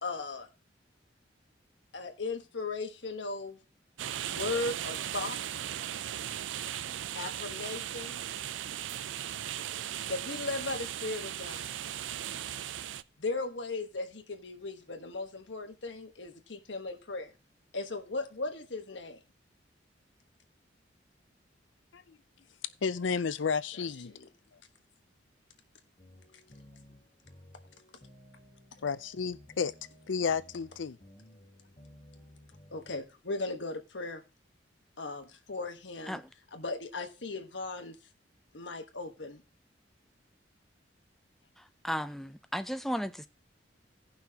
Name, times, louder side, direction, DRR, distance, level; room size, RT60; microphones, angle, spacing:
voice 1, 0.0-0.5 1.9-3.6 4.3-5.4 7.1-8.2 10.0-11.7 13.2-17.3 17.7-19.2 24.0-24.3 32.7-34.2 35.0-36.2 36.5-38.0 38.5-39.4, left 3 dB, 75° left, 1.3 m, -37 dB
sound 1, 4.0-13.0, right 11 dB, 80° right, 0.4 m, -37 dB
voice 2, 22.8-24.1 28.8-29.7 30.1-31.0, left 5 dB, 90° left, 0.6 m, -31 dB
sound 2, 26.0-33.0, left 1 dB, 35° left, 1.8 m, -56 dB
voice 3, 41.6-43.3, equal, ahead, 0.5 m, -35 dB
17.0 x 5.7 x 2.9 m
head